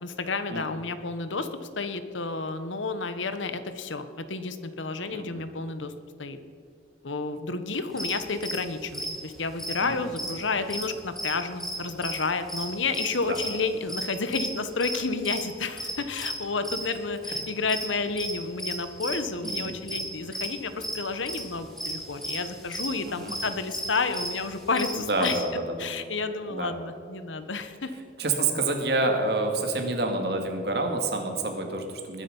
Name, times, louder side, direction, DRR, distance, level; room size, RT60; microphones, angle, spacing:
voice 1, 0.0-1.5 1.8-5.9 6.2-6.4 7.0-25.4 25.8-27.9, left 4 dB, 90° left, 10 dB, 1.2 m, -31 dB
voice 2, 5.1-5.4 9.8-10.0 13.3-13.4 19.4-19.7 23.1-23.3 24.9-25.9 26.5-26.7 28.2-32.2, right 2 dB, 60° right, 4 dB, 2.2 m, -28 dB
sound 1, 7.9-11.3 11.6-16.8 17.2-19.6 19.9-20.1 20.3-20.5 20.8-25.4, right 1 dB, ahead, 2.3 m, -34 dB
20.5 x 10.0 x 5.5 m, 2.4 s
head